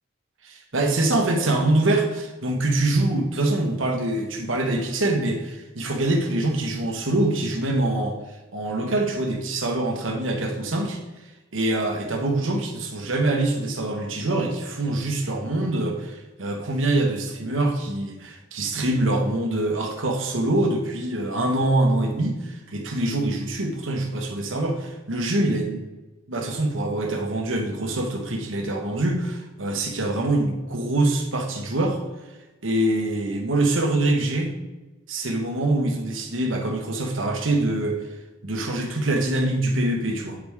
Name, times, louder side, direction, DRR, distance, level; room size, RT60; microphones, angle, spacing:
voice 1, 0.4-8.2 8.5-11.0 11.5-25.8 26.3-32.0 32.6-34.5 35.1-38.0 38.4-40.4, right 2 dB, 85° right, 2 dB, 1.3 m, -24 dB
8.7 x 4.9 x 3.6 m, 1.1 s
head